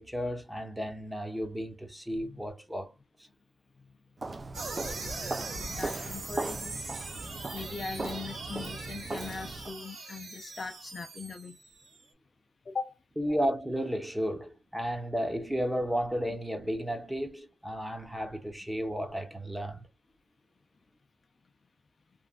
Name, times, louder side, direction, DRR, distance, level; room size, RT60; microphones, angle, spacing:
voice 1, 0.0-3.0 13.2-19.9, equal, 5° right, 0.9 m, -33 dB
Walk footsteps, 4.2-9.7, right 3 dB, 30° right, 0.4 m, -38 dB
sound 1, 4.5-12.0, right 3 dB, 65° right, 2.0 m, -41 dB
voice 2, 5.4-11.6 12.7-13.0, left 4 dB, 45° left, 0.4 m, -41 dB
3.2 x 2.4 x 2.2 m
cardioid pair, 80°, 0 cm